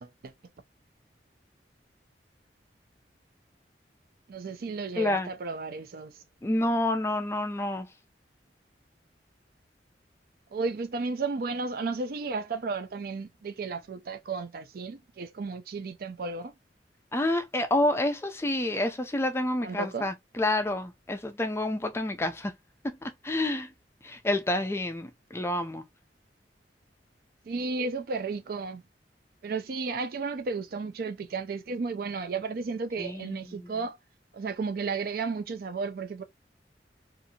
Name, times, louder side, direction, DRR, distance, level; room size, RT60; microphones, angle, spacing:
voice 1, 0.0-0.3 4.3-6.2 10.5-16.5 19.6-20.1 27.5-28.8 29.4-34.0 34.3-36.2, right 4 dB, 55° right, 0.4 m, -33 dB
voice 2, 5.0-5.3 6.4-7.9 17.1-22.5 22.8-23.7 24.0-25.8 33.0-33.7, left 1 dB, 15° left, 0.3 m, -29 dB
2.7 x 2.5 x 2.7 m
head